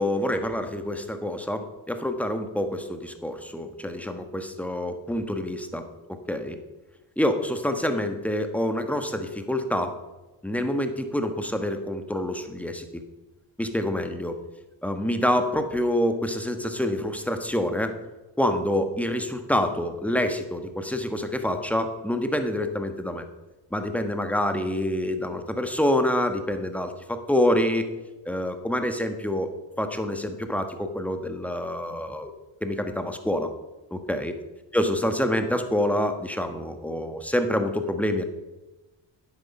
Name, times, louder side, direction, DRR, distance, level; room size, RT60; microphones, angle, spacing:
voice 1, 0.0-5.8 6.3-6.6 7.2-9.9 10.4-13.0 13.6-14.4 14.8-17.9 18.4-23.2 23.7-27.8 28.2-29.5 29.8-32.3 32.6-33.5 33.9-34.3 34.7-38.2, left 1 dB, 5° left, 7 dB, 1.4 m, -27 dB
11.0 x 8.1 x 5.5 m, 1.1 s
cardioid pair, 70°, 45 cm